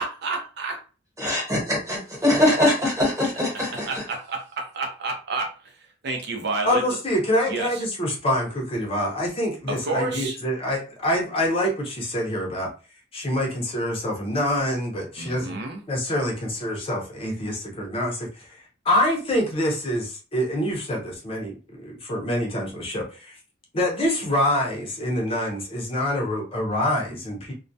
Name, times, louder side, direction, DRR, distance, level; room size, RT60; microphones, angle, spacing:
voice 1, 0.0-0.8 3.7-5.5 6.0-6.8 7.5-7.8 9.7-10.4 15.2-15.8, right 3 dB, 60° right, 3 dB, 0.5 m, -29 dB
voice 2, 1.2-3.9, left 1 dB, 20° right, -4 dB, 1.1 m, -22 dB
voice 3, 6.6-12.7 13.1-15.6 15.9-18.6 18.8-23.3 23.7-27.5, left 1 dB, 30° left, -1 dB, 0.6 m, -26 dB
2.2 x 2.1 x 2.6 m, 0.34 s
head